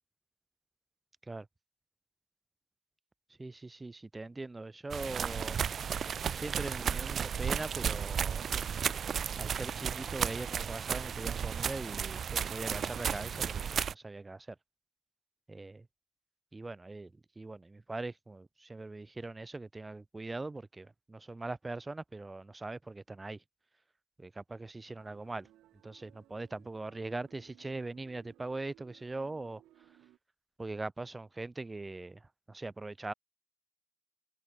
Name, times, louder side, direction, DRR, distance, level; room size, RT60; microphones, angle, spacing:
voice 1, 3.4-5.6 6.3-8.4 9.4-14.5 15.5-15.9 16.5-17.1 17.4-23.4 24.2-25.5 25.8-29.6 30.6-33.1, right 2 dB, 20° right, 1.1 m, -41 dB
sound 1, 4.9-13.9, right 7 dB, 55° right, 0.3 m, -34 dB
sound 2, 25.0-30.2, right 14 dB, 80° right, 5.4 m, -62 dB
supercardioid pair, 75°, 0 cm